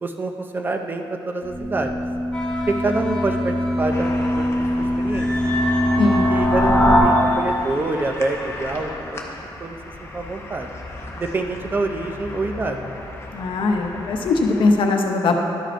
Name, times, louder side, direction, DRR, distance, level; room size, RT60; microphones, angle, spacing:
voice 1, 0.0-1.9 2.7-4.5 4.8-5.3 6.3-8.9 9.6-10.7 11.1-12.8, right 3 dB, 20° right, 5 dB, 0.5 m, -26 dB
sound 1, 1.4-7.0, left 1 dB, 5° right, 1.3 m, -21 dB
sound 2, 2.3-8.6, left 1 dB, 10° left, 1.4 m, -33 dB
sound 3, 3.9-14.7, left 2 dB, 30° left, 0.7 m, -37 dB
voice 2, 6.0-6.4 13.3-15.4, left 3 dB, 70° left, 3 dB, 0.8 m, -20 dB
11.5 x 5.0 x 4.4 m, 2.7 s
wide cardioid pair, 175°, 9 cm